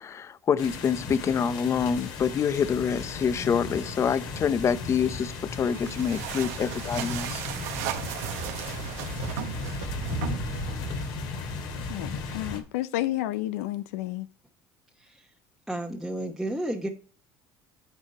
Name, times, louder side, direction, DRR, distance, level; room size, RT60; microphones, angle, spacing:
voice 1, 0.0-7.4, left 7 dB, 35° left, 0.6 m, -26 dB
sound 1, 0.6-12.6, left 3 dB, 70° left, 2.3 m, -35 dB
sound 2, 5.7-11.2, right 11 dB, 85° right, 0.9 m, -36 dB
voice 2, 11.9-14.3, left 15 dB, 90° left, 0.5 m, -31 dB
voice 3, 15.0-15.3 15.7-16.9, right 1 dB, ahead, 1.0 m, -32 dB
9.7 x 5.0 x 4.2 m
supercardioid pair, 95°, 8 cm